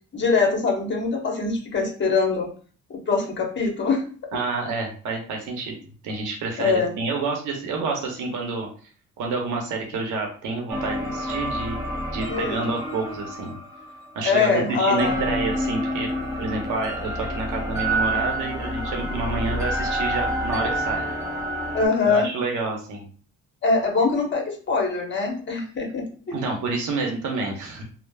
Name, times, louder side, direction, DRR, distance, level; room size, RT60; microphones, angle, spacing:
voice 1, 0.1-2.5 2.9-4.0 6.6-6.9 12.3-12.6 14.2-15.3 21.7-22.3 23.6-26.4, left 4 dB, 40° left, 1 dB, 0.9 m, -23 dB
voice 2, 4.3-5.8 6.0-8.7 9.2-11.8 12.1-13.6 14.2-16.1 16.4-21.1 22.0-23.1 26.3-27.8, right 3 dB, 80° right, 1 dB, 0.7 m, -28 dB
sound 1, 10.7-14.6 15.0-21.9, right 1 dB, 10° right, 0.7 m, -28 dB
3.2 x 2.0 x 2.2 m, 0.42 s
cardioid pair, 90°, 30 cm